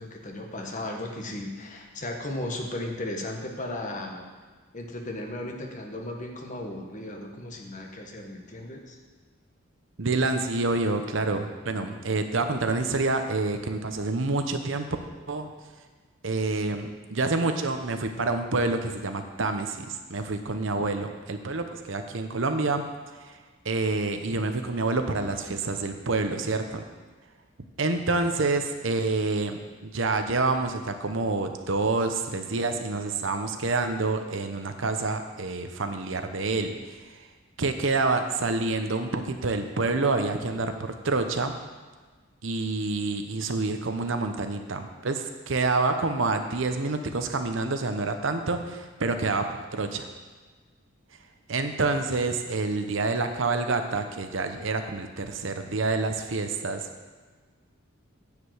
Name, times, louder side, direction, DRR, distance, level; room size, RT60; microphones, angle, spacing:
voice 1, 0.0-4.3 4.7-9.0, left 1 dB, 40° left, 2 dB, 1.3 m, -35 dB
voice 2, 10.0-14.9 15.3-15.5 16.2-22.8 23.3-23.4 23.6-26.8 27.8-37.0 37.6-41.5 42.4-49.5 49.7-50.1 51.5-56.9, right 3 dB, 65° right, 7 dB, 0.8 m, -27 dB
9.7 x 5.1 x 7.9 m, 1.4 s
head